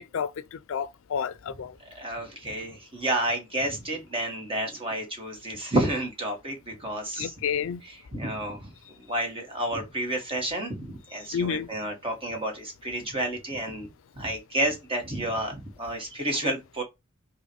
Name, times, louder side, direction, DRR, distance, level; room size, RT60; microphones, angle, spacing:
voice 1, 0.1-1.7 7.2-7.8 11.3-11.7, left 7 dB, 65° left, 0.4 m, -30 dB
voice 2, 1.9-7.3 7.8-8.7 9.1-13.9 14.2-16.8, right 1 dB, 25° right, 1.5 m, -30 dB
5.5 x 2.5 x 3.0 m
head